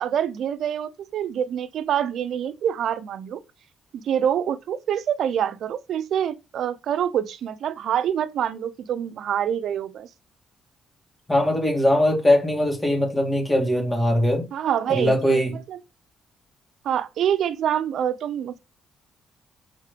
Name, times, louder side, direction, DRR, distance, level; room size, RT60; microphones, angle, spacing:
voice 1, 0.0-3.4 3.9-10.1 14.5-15.4 15.7-15.8 16.8-18.6, right 9 dB, 70° right, 0.7 m, -26 dB
voice 2, 11.3-14.5 14.9-15.6, left 1 dB, 15° left, 2.4 m, -21 dB
6.4 x 3.7 x 5.1 m
cardioid pair, 90°, 0 cm